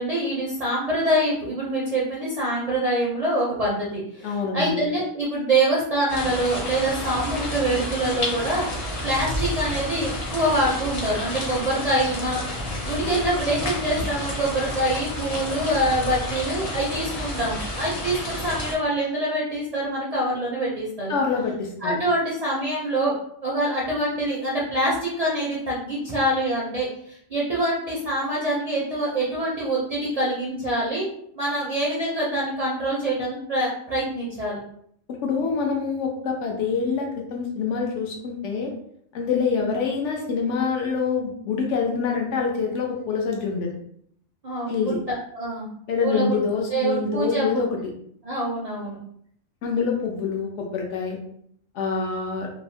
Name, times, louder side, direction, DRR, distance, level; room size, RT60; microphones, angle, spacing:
voice 1, 0.0-8.7 9.0-21.1 21.8-23.1 23.4-31.1 31.3-34.6 44.4-45.7 46.0-46.4 46.7-47.6 48.2-49.0, right 1 dB, 55° right, -6 dB, 0.4 m, -25 dB
voice 2, 4.2-4.9 21.1-21.9 35.1-38.7 39.1-43.7 44.7-45.0 45.9-47.8 49.6-51.2 51.7-52.5, left 5 dB, 75° left, 1 dB, 0.9 m, -25 dB
sound 1, 6.1-18.7, left 1 dB, 50° left, 0.4 m, -30 dB
2.6 x 2.0 x 2.6 m, 0.67 s
omnidirectional pair, 1.3 m